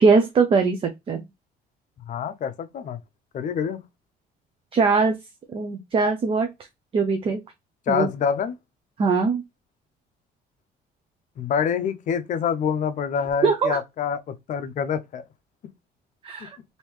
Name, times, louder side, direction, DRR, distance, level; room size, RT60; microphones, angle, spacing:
voice 1, 0.0-1.2 4.7-5.2 5.5-6.5 6.9-7.4 7.9-8.1 9.0-9.4 13.4-13.8 16.2-16.5, right 4 dB, 35° right, 0.5 m, -21 dB
voice 2, 2.1-3.0 3.3-3.8 7.9-8.5 11.4-15.2, left 7 dB, 50° left, 0.5 m, -26 dB
3.3 x 2.7 x 3.0 m
cardioid pair, 110°, 17 cm